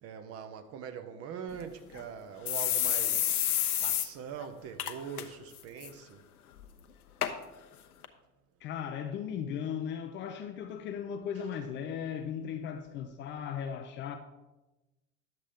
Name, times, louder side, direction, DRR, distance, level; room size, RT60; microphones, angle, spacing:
voice 1, 0.0-3.5 3.8-6.2 11.3-11.4, right 7 dB, 30° right, 0.7 m, -43 dB
sound 1, 1.5-1.6 1.9-2.0 2.5-4.1 4.4-4.5 4.8-5.2 5.6-5.9 6.6-6.7 7.2-7.3 8.0-8.1, left 11 dB, 65° left, 0.8 m, -29 dB
voice 2, 8.6-14.2, left 8 dB, 25° left, 0.5 m, -37 dB
10.5 x 7.3 x 3.6 m
figure-of-eight pair, 75°, 47 cm